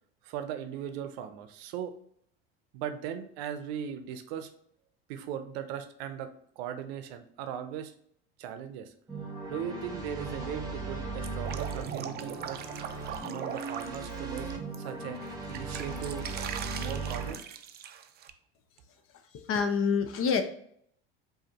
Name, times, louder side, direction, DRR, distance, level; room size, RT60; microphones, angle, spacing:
voice 1, 0.2-1.9 2.7-4.5 5.1-6.3 6.6-7.9 8.4-8.9 9.5-12.6 13.2-14.5 14.8-15.2 15.5-16.2 16.8-17.4, right 9 dB, 75° right, 10 dB, 0.6 m, -38 dB
sound 1, 9.1-17.3, right 3 dB, 10° right, 1.0 m, -37 dB
Drip, 11.2-14.8 15.1-18.3, right 9 dB, 35° right, 0.4 m, -41 dB
voice 2, 19.3-20.4, left 6 dB, 45° left, 7 dB, 0.7 m, -27 dB
4.9 x 2.6 x 2.9 m, 0.66 s
supercardioid pair, 90°, 31 cm